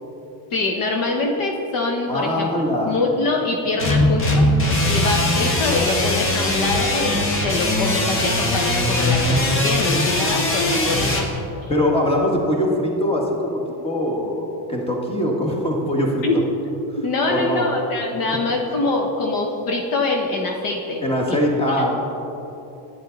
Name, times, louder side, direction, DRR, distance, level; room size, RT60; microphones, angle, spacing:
voice 1, 0.5-2.5 2.9-4.5 4.9-11.1 11.4-11.7 16.2-16.3 17.0-21.3 21.7-21.8, left 3 dB, 50° left, 1 dB, 0.9 m, -24 dB
voice 2, 2.1-3.0 11.7-16.2 16.9-17.0 17.3-17.7 21.0-21.9, left 1 dB, 10° left, 0 dB, 1.4 m, -22 dB
sound 1, 3.8-11.3, left 1 dB, 30° left, 1.1 m, -20 dB
11.0 x 9.3 x 3.9 m, 3.0 s
cardioid pair, 140°, 46 cm